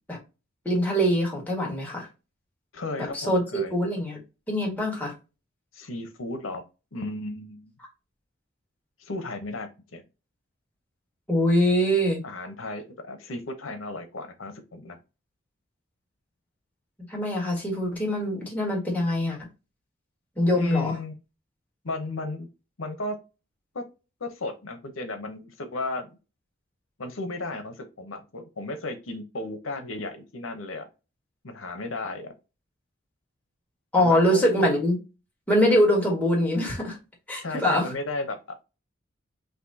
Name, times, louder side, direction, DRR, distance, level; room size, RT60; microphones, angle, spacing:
voice 1, 0.7-2.1 3.0-4.2 4.5-5.1 11.3-12.2 17.1-19.4 20.4-21.0 33.9-35.0 35.5-37.0 37.3-37.9, equal, 10° left, 1.8 m, -23 dB
voice 2, 2.7-3.7 5.7-6.6 6.9-7.7 9.0-10.0 12.2-15.0 20.5-21.2 21.8-22.5 22.8-23.2 23.7-23.8 24.2-26.2 27.0-30.8 31.4-32.3 34.0-34.7 37.4-38.4, left 2 dB, 85° left, 1.0 m, -34 dB
5.9 x 2.6 x 2.7 m
head